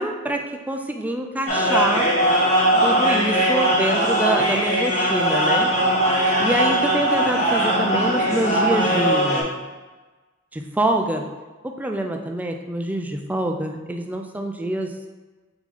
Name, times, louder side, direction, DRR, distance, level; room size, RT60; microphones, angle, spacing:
voice 1, 0.0-2.1 2.8-5.7 6.4-9.5 10.5-11.3 11.6-14.9, right 1 dB, 10° right, 3 dB, 0.3 m, -25 dB
sound 1, 1.5-9.4, right 1 dB, 35° left, 1.0 m, -20 dB
4.5 x 2.9 x 4.0 m, 1.3 s
head